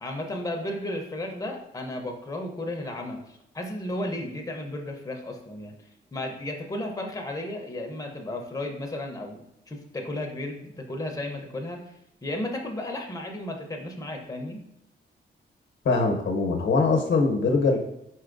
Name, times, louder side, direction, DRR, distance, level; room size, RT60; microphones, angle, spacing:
voice 1, 0.0-5.7 6.1-11.8 12.2-14.6, left 1 dB, 15° left, 2 dB, 0.7 m, -34 dB
voice 2, 15.8-17.8, left 3 dB, 70° left, 2 dB, 0.9 m, -22 dB
4.4 x 4.3 x 2.5 m, 0.80 s
cardioid pair, 85°, 20 cm